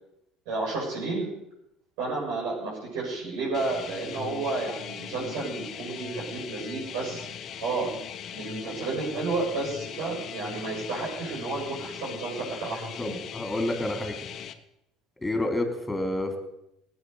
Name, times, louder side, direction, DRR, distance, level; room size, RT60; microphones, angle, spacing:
voice 1, 0.5-1.3 2.0-7.3 7.6-7.9 8.3-13.2, right 3 dB, 70° right, -5 dB, 7.3 m, -31 dB
sound 1, 3.5-14.5, left 8 dB, 50° left, 1.3 m, -39 dB
voice 2, 13.0-14.1 15.2-16.4, left 1 dB, 15° left, 5 dB, 4.3 m, -29 dB
19.0 x 8.6 x 6.8 m, 0.82 s
hypercardioid pair, 65°, 0 cm